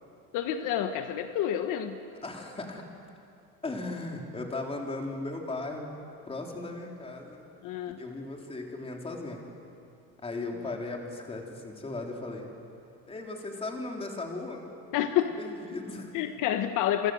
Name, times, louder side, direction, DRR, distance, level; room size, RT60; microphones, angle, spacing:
voice 1, 0.3-2.0 7.6-8.0 14.9-15.4 16.1-17.1, left 11 dB, 65° left, 7 dB, 1.4 m, -28 dB
voice 2, 2.2-2.8 3.6-5.9 6.3-7.4 8.0-9.4 10.2-12.5 13.1-14.7 15.4-16.1, left 2 dB, 15° left, 1 dB, 3.9 m, -37 dB
28.0 x 26.5 x 8.0 m, 2.5 s
cardioid pair, 145°, 34 cm